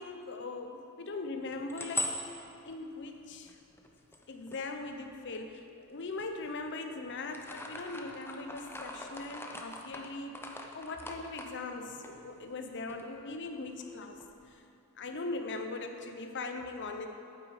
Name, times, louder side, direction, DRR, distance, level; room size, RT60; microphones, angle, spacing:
voice 1, 0.0-2.2 2.6-3.6 4.3-10.3 10.7-14.2 14.5-14.6 15.0-17.1, left 3 dB, 55° left, 5 dB, 0.8 m, -40 dB
sound 1, 1.4-5.5 6.0-6.8 7.1-12.6 12.9-13.0 13.3-14.5, left 2 dB, 10° left, 0.6 m, -42 dB
8.8 x 8.1 x 4.9 m, 2.7 s
head